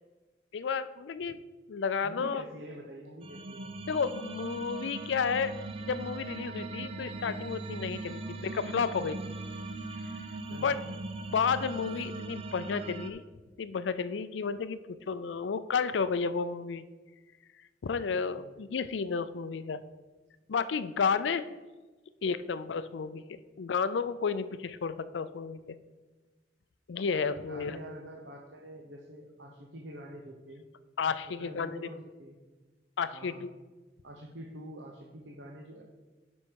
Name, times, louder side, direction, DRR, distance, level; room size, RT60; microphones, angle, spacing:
voice 1, 0.5-1.4 1.7-2.4 3.9-9.2 10.5-10.8 11.3-13.2 13.6-14.8 15.1-16.8 17.8-19.8 20.5-21.4 22.2-25.6 26.9-27.8 31.0-31.9 33.0-33.5, left 5 dB, 85° left, 14 dB, 0.4 m, -32 dB
voice 2, 2.0-3.7 10.5-10.8 18.4-18.5 27.4-30.7 31.2-32.4 33.1-33.5 34.0-35.8, right 1 dB, 85° right, 0 dB, 0.9 m, -46 dB
sound 1, 3.2-13.1, right 2 dB, 35° right, 0.5 m, -40 dB
9.6 x 5.4 x 4.6 m, 1.3 s
head